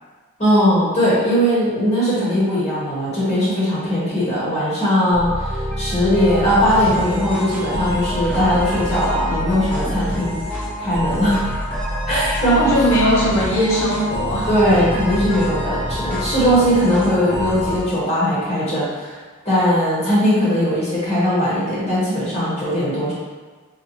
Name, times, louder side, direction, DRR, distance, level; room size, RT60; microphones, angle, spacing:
voice 1, 0.4-11.4 12.1-12.7 14.5-19.2 19.4-23.1, equal, 30° left, -9 dB, 1.3 m, -19 dB
sound 1, 5.1-17.8, equal, 10° left, 0.7 m, -26 dB
voice 2, 12.4-14.5, equal, 75° left, -5 dB, 0.7 m, -19 dB
4.0 x 2.3 x 3.0 m, 1.4 s
head